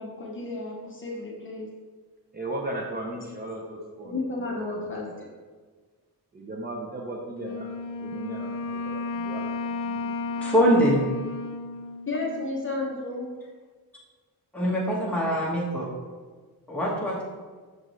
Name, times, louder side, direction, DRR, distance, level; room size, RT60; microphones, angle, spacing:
voice 1, 0.0-1.7 3.2-3.3 4.0-5.3 12.1-13.3, left 2 dB, 30° left, -3 dB, 0.8 m, -32 dB
voice 2, 2.3-4.1 4.6-5.1 6.3-7.7 8.0-9.4 9.7-10.1, right 1 dB, 25° right, -2 dB, 0.6 m, -36 dB
Wind instrument woodwind instrument, 7.4-12.9, left 3 dB, 60° left, 0.5 m, -33 dB
voice 3, 10.4-11.0 14.5-15.9 16.7-17.2, equal, 5° left, -6 dB, 1.5 m, -23 dB
6.2 x 4.9 x 3.1 m, 1.5 s
wide cardioid pair, 155°, 37 cm